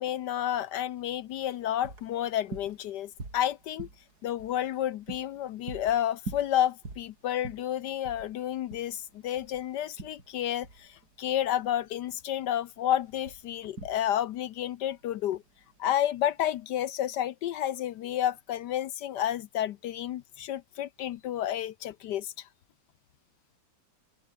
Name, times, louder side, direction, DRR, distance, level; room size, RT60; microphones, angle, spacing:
voice 1, 0.0-3.9 4.2-15.4 15.8-22.5, left 11 dB, 70° left, 1.1 m, -31 dB
sound 1, 1.0-16.6, right 3 dB, 50° right, 5.0 m, -46 dB
omnidirectional pair, 2.2 m